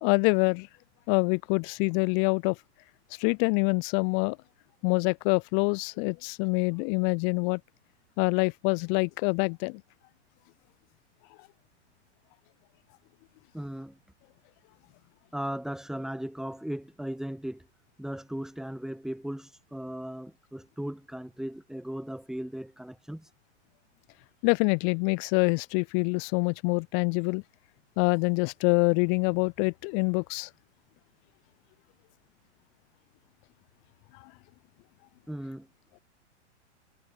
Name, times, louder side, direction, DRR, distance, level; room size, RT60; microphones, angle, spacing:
voice 1, 0.0-0.7 1.1-2.6 3.2-4.4 4.8-7.6 8.2-9.8 24.4-27.4 28.0-30.5, left 40 dB or more, 35° left, 0.6 m, -25 dB
voice 2, 13.5-14.0 15.3-17.7 18.0-23.3 35.3-35.7, equal, ahead, 3.6 m, -37 dB
hypercardioid pair, 110°, 36 cm